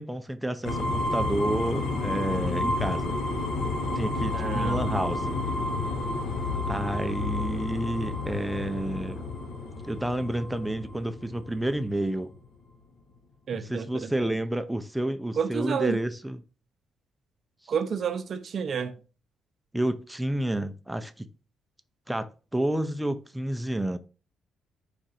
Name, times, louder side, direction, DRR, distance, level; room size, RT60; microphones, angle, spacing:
voice 1, 0.0-3.2 3.9-5.4 6.7-9.2 9.8-12.3 13.5-16.4 17.6-17.7 19.7-21.3 22.1-24.0, right 1 dB, 5° right, 0.4 m, -30 dB
sound 1, 0.6-12.4, left 2 dB, 75° left, 1.1 m, -30 dB
voice 2, 4.3-4.8 13.5-14.3 15.4-16.0 17.7-18.9, right 7 dB, 55° right, 0.5 m, -30 dB
4.9 x 2.5 x 4.0 m
cardioid pair, 90°, 0 cm